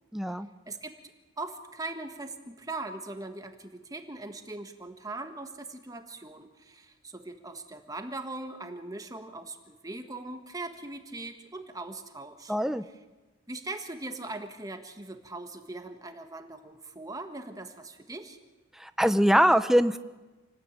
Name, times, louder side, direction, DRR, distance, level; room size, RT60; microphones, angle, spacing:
voice 1, 0.1-0.5 12.5-12.8 18.8-20.0, equal, ahead, 11 dB, 0.8 m, -23 dB
voice 2, 0.7-1.0 1.4-12.5 13.5-18.4, right 2 dB, 15° right, 6 dB, 1.6 m, -40 dB
28.0 x 20.0 x 9.0 m, 1.2 s
head